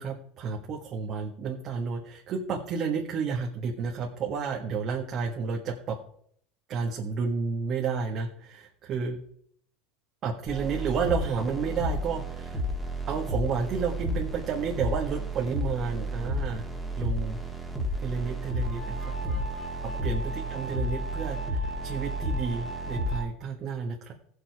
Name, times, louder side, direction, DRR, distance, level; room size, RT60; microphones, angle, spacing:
voice 1, 0.0-6.0 6.7-9.2 10.2-12.6 13.1-16.6 16.9-17.4 18.0-19.5 20.0-24.1, right 5 dB, 40° right, 0 dB, 1.6 m, -31 dB
sound 1, 10.5-23.2, right 1 dB, ahead, 2.0 m, -32 dB
15.5 x 7.0 x 4.8 m, 0.66 s
supercardioid pair, 125°, 0 cm